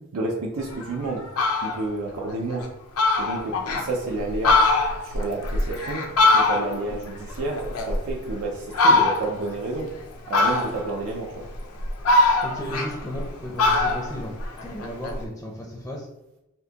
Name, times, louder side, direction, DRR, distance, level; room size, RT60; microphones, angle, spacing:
voice 1, 0.1-1.2 1.6-2.6 3.2-4.6 5.0-6.0 6.3-9.9 10.3-11.4, right 2 dB, 80° right, 0 dB, 0.5 m, -30 dB
Fowl, 0.7-0.8 1.2-1.8 2.3-2.4 2.6-2.7 3.0-3.9 4.3-6.9 7.3-8.3 8.7-9.4 10.3-11.0 11.5-13.3 13.6-15.2, left 2 dB, 90° left, 0.6 m, -21 dB
voice 2, 12.4-14.3 14.6-16.1, left 1 dB, 10° left, -1 dB, 0.5 m, -34 dB
4.4 x 2.7 x 2.8 m, 0.91 s
head